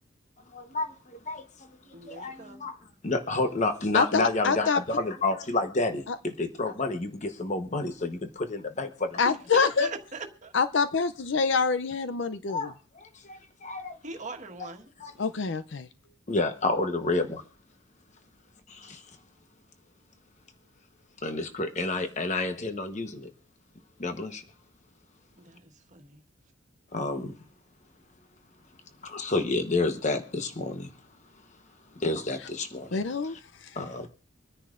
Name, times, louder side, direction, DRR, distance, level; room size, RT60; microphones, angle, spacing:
voice 1, 0.5-1.5 2.0-2.8 3.0-8.2 8.5-8.9 12.5-14.0 15.0-15.1 16.3-17.4 18.7-19.0 21.2-23.3 24.0-24.4 26.9-27.3 29.0-30.9 32.0-33.0 33.8-34.1, left 2 dB, 35° left, 1.0 m, -30 dB
voice 2, 1.9-2.6 9.2-10.5 14.0-14.9 25.4-26.2, right 3 dB, 35° right, 1.5 m, -40 dB
voice 3, 3.9-4.8 6.1-6.2 9.2-9.9 10.5-12.7 15.2-15.9 32.9-33.4, left 5 dB, 65° left, 0.6 m, -25 dB
25.5 x 10.0 x 2.5 m
head